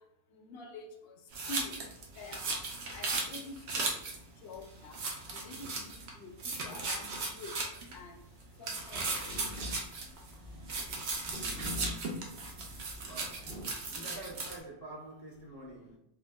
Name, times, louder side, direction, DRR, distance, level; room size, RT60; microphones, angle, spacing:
voice 1, 0.3-1.2 1.5-1.8 2.2-4.0 4.4-5.0 5.3-7.6 7.9-8.2 8.6-9.5, left 3 dB, 70° left, 3 dB, 0.8 m, -47 dB
sound 1, 1.3-4.2 4.5-4.6 4.9-6.1 6.4-8.0 8.6-10.3 10.7-14.6, right 3 dB, 75° right, 0.9 m, -37 dB
sound 2, 8.7-13.8, left 1 dB, 60° right, 1.6 m, -44 dB
voice 2, 13.1-13.5 13.9-16.0, right 2 dB, 20° left, -5 dB, 1.1 m, -47 dB
3.6 x 2.5 x 2.2 m, 0.83 s
omnidirectional pair, 1.1 m